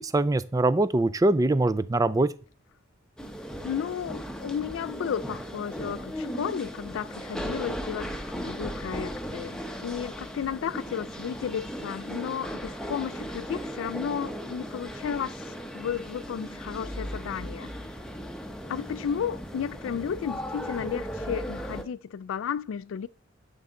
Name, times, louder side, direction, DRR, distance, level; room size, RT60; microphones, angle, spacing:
voice 1, 0.0-2.3, right 2 dB, 20° right, 0.3 m, -23 dB
sound 1, 3.2-21.8, equal, 5° left, 0.8 m, -37 dB
voice 2, 3.6-15.4 15.7-17.7 18.7-23.1, left 8 dB, 80° left, 0.3 m, -33 dB
11.0 x 5.4 x 3.7 m
head